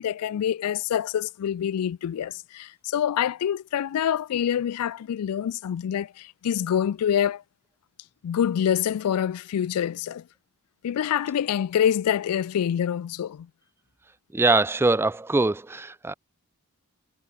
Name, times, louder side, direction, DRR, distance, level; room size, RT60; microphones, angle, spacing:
voice 1, 0.0-7.4 8.2-10.2 10.8-13.5, left 9 dB, 85° left, 0.3 m, -26 dB
voice 2, 14.3-16.1, right 2 dB, 10° right, 0.3 m, -22 dB
head